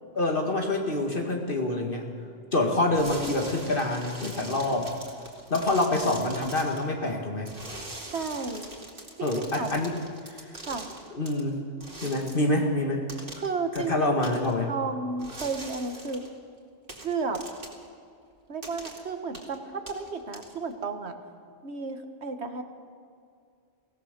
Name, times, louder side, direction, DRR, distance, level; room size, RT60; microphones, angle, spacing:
voice 1, 0.2-2.1 2.5-4.9 5.5-7.5 9.2-9.9 11.1-11.6 12.0-13.1 13.8-14.7, left 2 dB, 55° left, 2 dB, 2.1 m, -26 dB
sound 1, 2.9-6.8 7.4-11.4 11.8-12.5 13.1-13.5 13.8-13.9 14.2-14.5 15.2-16.3 16.9-17.8 18.6-19.0 19.3-19.6 19.9-20.7, right 2 dB, 55° right, 2.7 m, -42 dB
voice 2, 8.1-8.7 9.2-9.7 10.6-10.9 13.3-14.4 14.7-16.3 17.0-17.4 18.5-21.1 21.6-22.6, right 4 dB, 80° right, 7 dB, 1.7 m, -33 dB
23.5 x 17.0 x 6.7 m, 2.4 s
omnidirectional pair, 1.1 m